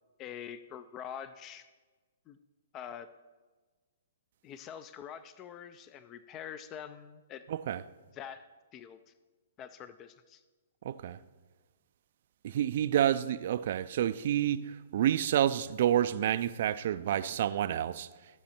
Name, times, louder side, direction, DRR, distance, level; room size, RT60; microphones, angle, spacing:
voice 1, 0.2-1.7 2.3-2.4 2.7-3.1 4.4-7.4 8.1-8.4 8.7-9.1 9.6-10.4, left 9 dB, 25° left, 0.4 m, -45 dB
voice 2, 7.5-7.8 10.8-11.2 12.4-18.1, right 11 dB, 55° right, 0.4 m, -29 dB
14.5 x 6.2 x 4.4 m
hypercardioid pair, 135°, 0 cm